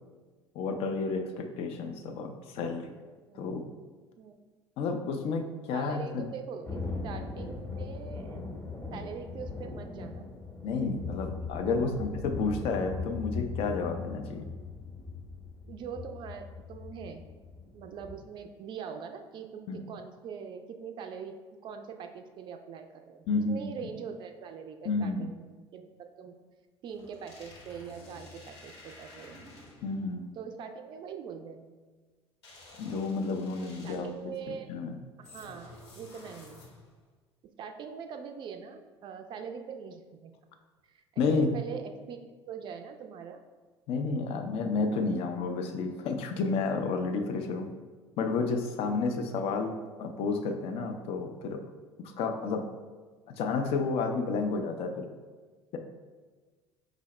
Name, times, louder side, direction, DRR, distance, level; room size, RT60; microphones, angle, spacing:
voice 1, 0.6-2.9 3.3-3.6 4.8-6.3 10.6-14.5 19.7-19.9 23.3-23.8 24.8-25.3 29.8-30.2 32.8-34.1 34.5-35.0 41.2-41.5 43.9-47.7 48.2-51.6 52.2-52.6 53.3-55.1, left 4 dB, 45° left, 4 dB, 0.4 m, -31 dB
voice 2, 5.7-8.4 8.9-10.3 11.6-11.9 15.7-17.2 17.7-21.4 21.6-26.4 26.8-29.4 30.4-31.7 33.8-34.7 35.2-36.6 37.6-40.3 40.9-43.4, right 6 dB, 35° right, 6 dB, 0.3 m, -43 dB
Thunder, 6.6-18.2, left 4 dB, 15° left, 0.8 m, -39 dB
sound 1, 26.9-30.0 32.4-34.2 35.2-37.0, left 2 dB, 75° left, 0.9 m, -51 dB
4.9 x 2.0 x 3.1 m, 1.4 s
figure-of-eight pair, 65°, 14 cm